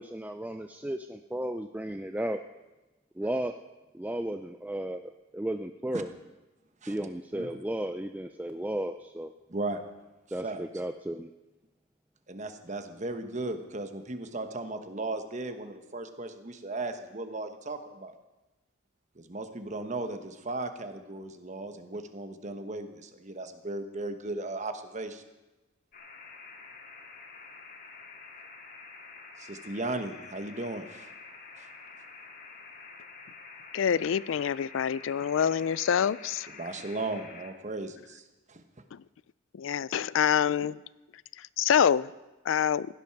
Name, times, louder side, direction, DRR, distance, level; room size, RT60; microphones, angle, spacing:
voice 1, 0.0-2.4 3.2-3.5 3.9-6.1 6.9-9.3 10.3-11.3, right 1 dB, 10° right, 0.4 m, -34 dB
voice 2, 9.5-9.8 10.4-10.6 12.3-18.1 19.1-25.2 29.4-31.1 31.6-31.7 36.6-38.6, right 2 dB, 35° right, 1.1 m, -36 dB
sound 1, 25.9-37.5, left 4 dB, 45° left, 2.2 m, -48 dB
voice 3, 33.7-36.5 38.9-39.0 39.5-40.8 41.4-42.1 42.5-42.9, left 8 dB, 75° left, 0.4 m, -26 dB
16.0 x 10.5 x 5.9 m
head